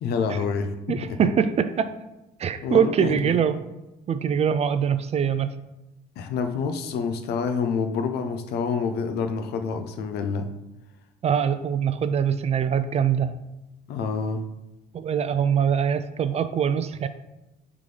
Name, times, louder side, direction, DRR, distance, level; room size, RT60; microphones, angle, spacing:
voice 1, 0.0-1.3 2.6-3.4 6.2-10.5 13.9-14.5, left 5 dB, 70° left, 0.7 m, -27 dB
voice 2, 0.9-1.9 2.4-3.7 4.1-5.5 11.2-13.3 14.9-17.1, right 8 dB, 40° right, 0.4 m, -23 dB
7.8 x 3.7 x 3.3 m
cardioid pair, 110°, 17 cm